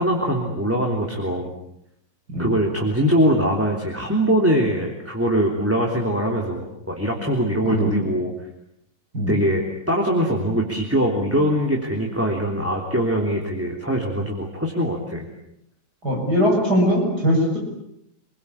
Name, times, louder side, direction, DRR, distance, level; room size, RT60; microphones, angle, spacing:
voice 1, 0.0-1.5 2.4-8.3 9.3-15.3, equal, 5° right, 0 dB, 3.4 m, -22 dB
voice 2, 16.0-17.6, equal, 60° right, 0 dB, 7.8 m, -20 dB
29.0 x 22.5 x 8.7 m, 0.78 s
omnidirectional pair, 1.9 m